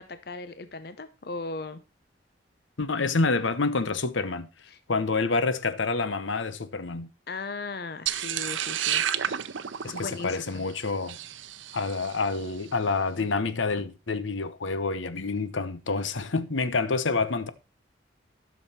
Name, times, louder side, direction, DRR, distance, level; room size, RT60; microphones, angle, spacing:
voice 1, 0.0-1.8 4.7-4.8 7.3-9.0 9.9-10.6, left 3 dB, 55° left, 0.7 m, -37 dB
voice 2, 2.8-4.5 4.9-7.1 9.8-11.2 11.7-17.5, left 3 dB, 85° left, 0.9 m, -28 dB
sound 1, 8.1-12.4, right 10 dB, 85° right, 0.7 m, -31 dB
12.5 x 6.4 x 4.3 m
head